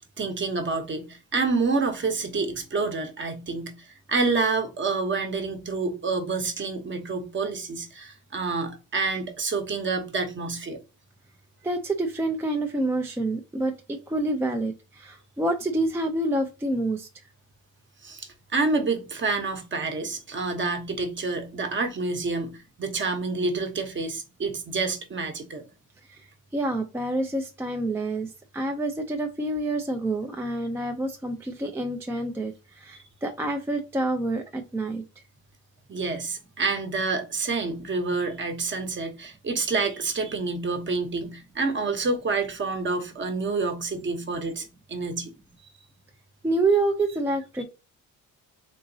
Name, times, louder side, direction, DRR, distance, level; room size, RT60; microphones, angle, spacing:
voice 1, 0.2-10.8 18.0-25.6 35.9-45.3, right 3 dB, 30° right, 0.8 m, -28 dB
voice 2, 11.6-17.1 26.1-26.2 26.5-35.0 46.4-47.6, right 2 dB, 5° right, 0.3 m, -27 dB
3.8 x 2.9 x 2.6 m
cardioid pair, 110°, 36 cm